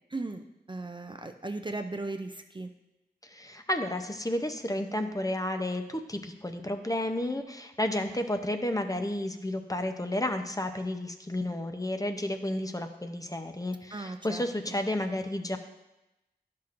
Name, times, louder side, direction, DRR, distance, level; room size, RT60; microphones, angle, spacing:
voice 1, 0.1-2.7 13.9-14.8, right 2 dB, 30° right, 5 dB, 0.4 m, -37 dB
voice 2, 3.2-15.6, left 1 dB, 20° left, 6 dB, 0.6 m, -32 dB
11.0 x 5.7 x 2.5 m, 0.95 s
wide cardioid pair, 65°, 17 cm